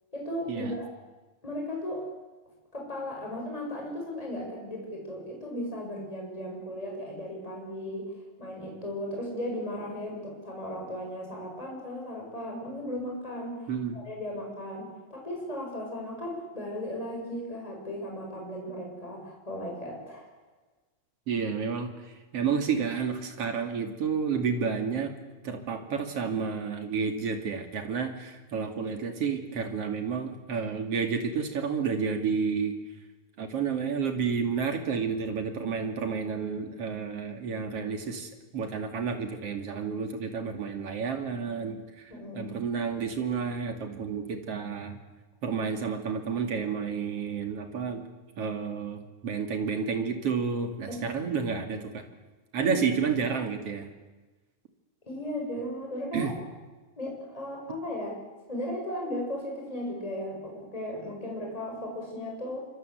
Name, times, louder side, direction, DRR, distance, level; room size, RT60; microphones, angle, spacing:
voice 1, 0.1-0.9 1.4-2.0 2.7-8.1 8.4-13.6 13.9-20.3 42.1-42.6 50.9-51.0 52.6-52.8 55.1-56.3 57.0-58.2 58.5-62.7, left 1 dB, 10° left, -1 dB, 7.4 m, -36 dB
voice 2, 13.7-14.0 21.3-25.1 25.4-32.7 33.4-45.0 45.4-48.1 48.4-52.0 52.5-53.9 56.1-56.3, right 6 dB, 45° right, 5 dB, 3.3 m, -30 dB
26.0 x 25.5 x 8.1 m, 1.2 s
omnidirectional pair, 4.0 m